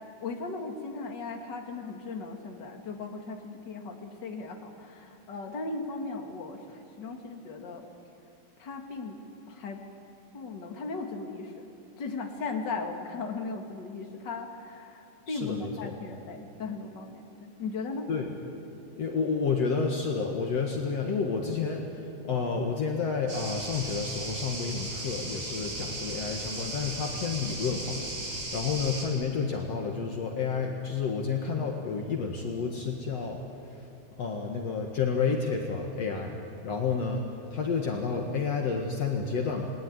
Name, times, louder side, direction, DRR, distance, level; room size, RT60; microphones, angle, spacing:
voice 1, 0.2-7.8 8.6-9.2 9.5-9.8 10.3-11.7 12.0-18.1, left 3 dB, 35° left, 2 dB, 2.7 m, -37 dB
voice 2, 15.3-15.9 18.1-18.3 19.0-21.9 22.2-33.4 33.7-33.8 34.2-36.4 36.6-37.2 37.5-39.7, left 5 dB, 55° left, 1 dB, 2.6 m, -30 dB
sound 1, 23.3-29.0, right 2 dB, 50° right, 6.2 m, -36 dB
29.0 x 21.0 x 9.7 m, 2.6 s
omnidirectional pair, 3.6 m